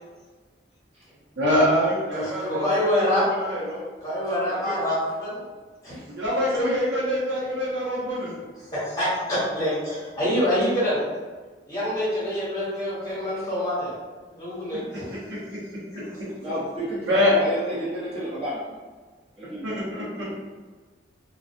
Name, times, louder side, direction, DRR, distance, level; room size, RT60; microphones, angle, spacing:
voice 1, 1.4-3.0 3.3-3.8 4.5-4.8 6.1-8.3 15.3-15.6 15.9-16.3 17.1-17.3 19.6-20.4, left 1 dB, 75° right, -7 dB, 0.8 m, -25 dB
voice 2, 2.1-3.3 4.0-5.4 5.8-5.9 6.5-6.6 8.7-11.0 11.7-13.9 14.3-15.1, equal, 20° left, -11 dB, 1.1 m, -26 dB
voice 3, 16.4-18.6 19.4-19.7, right 1 dB, 30° right, -9 dB, 0.8 m, -30 dB
2.4 x 2.2 x 2.5 m, 1.4 s
head